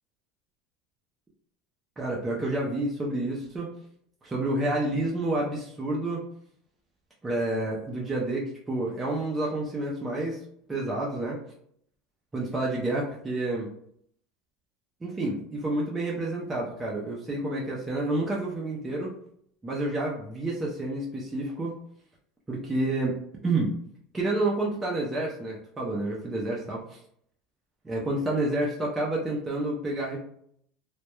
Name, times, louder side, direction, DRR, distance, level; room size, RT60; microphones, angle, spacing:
voice 1, 2.0-3.7 4.2-6.2 7.2-10.4 10.7-11.4 12.3-13.7 15.0-19.1 19.6-21.7 22.5-23.2 23.4-23.7 24.1-27.0 27.8-30.2, right 2 dB, 10° right, -4 dB, 0.3 m, -29 dB
2.1 x 2.0 x 2.9 m, 0.67 s
cardioid pair, 170°, 0 cm